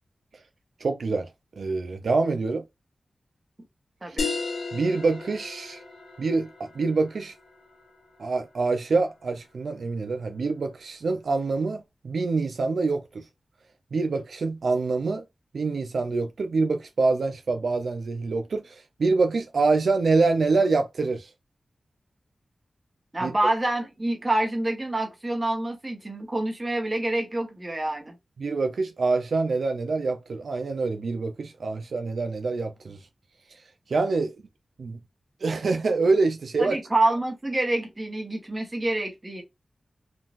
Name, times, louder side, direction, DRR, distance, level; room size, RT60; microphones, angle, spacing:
voice 1, 0.8-1.3 1.6-2.6 4.1-4.2 4.7-5.8 6.2-7.3 8.2-13.2 13.9-15.2 15.5-21.3 23.2-23.3 28.4-33.0 33.5-33.6 33.9-34.3 34.8-35.0 35.4-36.8, right 3 dB, 80° right, 0.4 m, -25 dB
sound 1, 4.2-9.3, left 4 dB, 85° left, 1.1 m, -36 dB
voice 2, 23.1-28.2 36.6-39.4, right 2 dB, 30° right, 1.1 m, -27 dB
3.7 x 2.4 x 2.4 m
wide cardioid pair, 80°, 0 cm